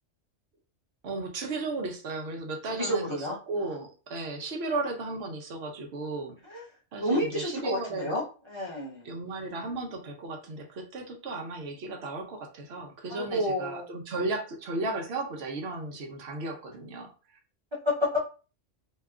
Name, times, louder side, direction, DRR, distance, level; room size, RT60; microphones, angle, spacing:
voice 1, 1.0-6.4 6.9-8.2 9.0-17.1, right 3 dB, 65° right, 2 dB, 1.0 m, -35 dB
voice 2, 2.7-3.4 6.5-6.6 7.0-9.1 13.1-13.9 17.7-18.2, left 1 dB, 25° right, -4 dB, 1.0 m, -30 dB
2.8 x 2.2 x 3.6 m, 0.35 s
omnidirectional pair, 1.2 m